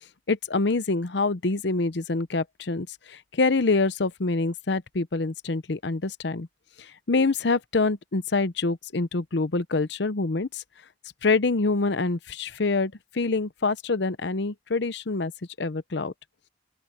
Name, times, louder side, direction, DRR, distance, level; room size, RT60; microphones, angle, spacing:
voice 1, 0.3-6.5 6.8-10.6 11.2-15.3 15.6-16.1, left 3 dB, 65° left, 0.8 m, -26 dB
open air
head